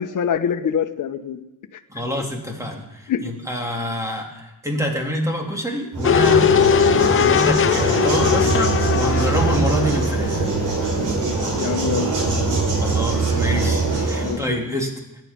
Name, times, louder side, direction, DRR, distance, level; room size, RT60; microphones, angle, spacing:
voice 1, 0.0-1.4 3.1-3.2 11.6-12.1 14.2-14.6, left 8 dB, 65° left, 6 dB, 1.4 m, -24 dB
voice 2, 1.9-10.5 12.8-14.9, equal, 10° right, 1 dB, 3.5 m, -26 dB
sound 1, 5.9-14.4, right 3 dB, 65° right, 5.6 m, -22 dB
sound 2, 6.0-11.0 11.3-11.4, left 8 dB, 40° left, 0.5 m, -19 dB
22.5 x 11.0 x 5.5 m, 0.96 s
cardioid pair, 135°, 33 cm